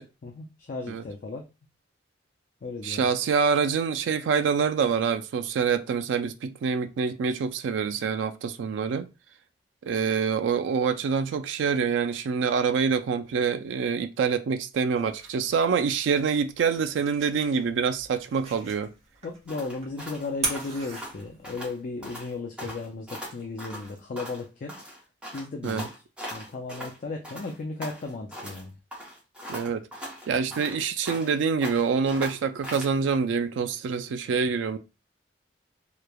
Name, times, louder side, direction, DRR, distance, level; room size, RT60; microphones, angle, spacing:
voice 1, 0.0-1.4 2.6-3.1 19.2-24.7 25.3-25.9 26.3-28.8, left 3 dB, 50° left, 0.4 m, -35 dB
voice 2, 2.8-9.1 9.8-18.9 25.6-25.8 29.5-29.9 30.3-34.8, right 6 dB, 85° right, 0.3 m, -26 dB
sound 1, 14.7-21.7, right 3 dB, 35° right, 1.0 m, -39 dB
sound 2, 19.5-21.7 22.0-22.3 22.6-24.4 24.7-27.0 27.2-28.6 28.9-31.4 31.6-32.9, equal, 5° right, 0.7 m, -40 dB
3.1 x 2.1 x 2.2 m
head